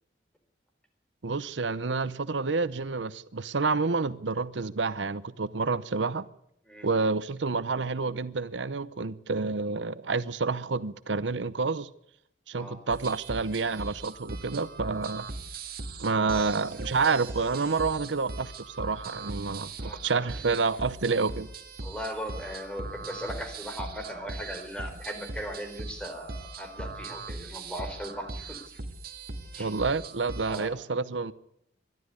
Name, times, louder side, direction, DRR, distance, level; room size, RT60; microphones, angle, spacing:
voice 1, 1.2-6.3 6.8-11.9 12.5-15.3 16.0-21.5 29.6-31.3, right 4 dB, 85° right, 0.8 m, -29 dB
sound 1, 12.9-30.7, right 3 dB, 55° right, 2.1 m, -40 dB
voice 2, 19.8-20.3 21.8-28.6 29.5-29.7 30.5-30.8, equal, 5° left, 4.1 m, -38 dB
22.0 x 12.5 x 9.7 m
head